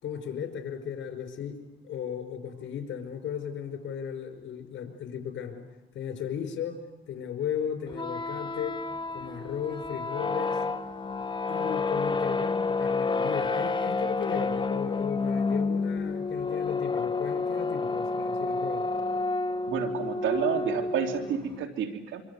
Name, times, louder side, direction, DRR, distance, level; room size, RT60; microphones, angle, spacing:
voice 1, 0.0-5.7 5.9-8.8 9.1-10.6 11.5-18.9, left 8 dB, 70° left, 6 dB, 5.1 m, -36 dB
sound 1, 7.9-21.6, left 3 dB, 25° left, 1.1 m, -30 dB
voice 2, 19.7-22.2, right 7 dB, 80° right, 6 dB, 3.1 m, -30 dB
25.5 x 25.0 x 8.4 m, 1.1 s
cardioid pair, 90°, 20 cm